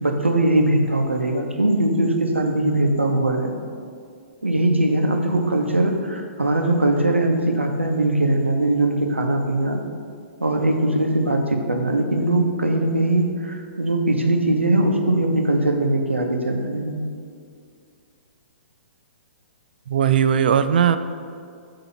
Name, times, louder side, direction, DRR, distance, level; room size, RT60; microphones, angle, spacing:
voice 1, 0.0-3.6 4.4-9.8 10.4-16.9, right 1 dB, 80° right, 3 dB, 0.8 m, -21 dB
voice 2, 19.9-21.0, right 8 dB, 50° right, 11 dB, 0.3 m, -18 dB
8.2 x 2.9 x 5.8 m, 2.3 s
figure-of-eight pair, 115°, 6 cm